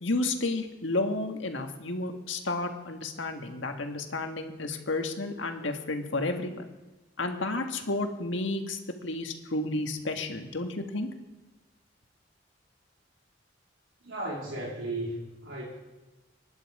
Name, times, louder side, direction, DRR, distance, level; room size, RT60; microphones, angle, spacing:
voice 1, 0.0-6.6 7.2-11.1, left 2 dB, 75° left, 5 dB, 1.7 m, -31 dB
voice 2, 14.0-15.6, right 1 dB, 90° right, -4 dB, 3.7 m, -35 dB
25.0 x 10.5 x 4.9 m, 1.1 s
head